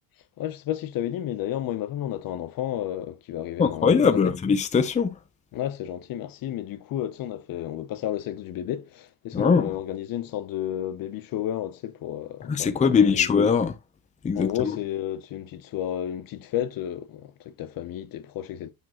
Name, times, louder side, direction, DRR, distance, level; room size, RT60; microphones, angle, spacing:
voice 1, 0.4-4.3 5.5-13.3 14.3-18.7, left 11 dB, 50° left, 0.8 m, -32 dB
voice 2, 3.6-5.2 9.3-9.7 12.5-13.8 14.2-14.8, left 6 dB, 15° left, 0.7 m, -21 dB
7.1 x 6.1 x 2.9 m
cardioid pair, 135°, 44 cm